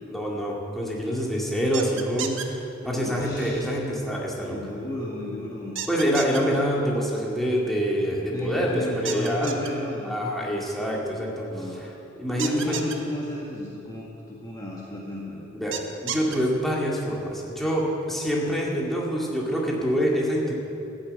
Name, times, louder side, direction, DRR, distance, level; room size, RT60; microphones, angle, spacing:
voice 1, 0.1-4.8 5.9-9.5 10.1-11.5 11.7-11.9 12.2-12.8 15.5-20.5, equal, ahead, -4 dB, 2.1 m, -26 dB
sound 1, 1.7-2.5 5.8-6.4 9.1-9.7 12.4-13.0 15.7-16.4, right 8 dB, 70° right, 1.0 m, -31 dB
voice 2, 2.8-3.8 4.4-5.7 8.3-10.6 11.5-11.9 12.3-15.5, left 1 dB, 20° left, -5 dB, 1.5 m, -33 dB
13.5 x 7.7 x 8.8 m, 2.8 s
head